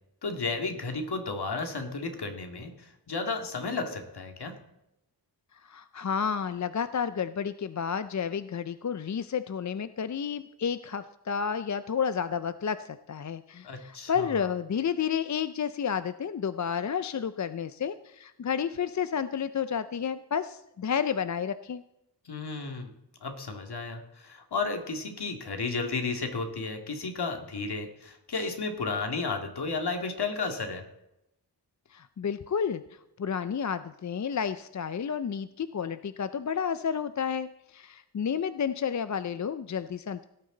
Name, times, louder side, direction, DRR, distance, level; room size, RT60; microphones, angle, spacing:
voice 1, 0.2-4.5 13.6-14.4 22.2-22.9 23.2-30.8, left 4 dB, 70° left, 4 dB, 2.3 m, -33 dB
voice 2, 5.5-21.8 31.9-40.3, left 7 dB, 45° left, 12 dB, 0.5 m, -31 dB
17.5 x 13.5 x 3.9 m, 0.85 s
wide cardioid pair, 130°, 41 cm